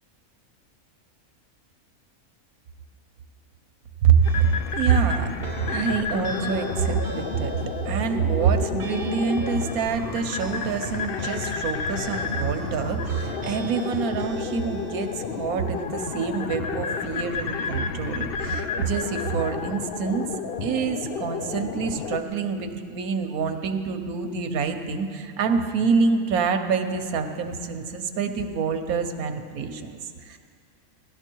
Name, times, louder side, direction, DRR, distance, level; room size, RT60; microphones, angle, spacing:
voice 1, 4.0-5.3 5.7-20.3 20.6-30.4, right 6 dB, 85° right, 7 dB, 1.3 m, -26 dB
sound 1, 4.2-15.5, right 4 dB, 55° right, 1.3 m, -42 dB
sound 2, 4.3-22.2, left 6 dB, 55° left, 0.7 m, -31 dB
17.0 x 12.5 x 4.5 m, 2.2 s
omnidirectional pair, 1.5 m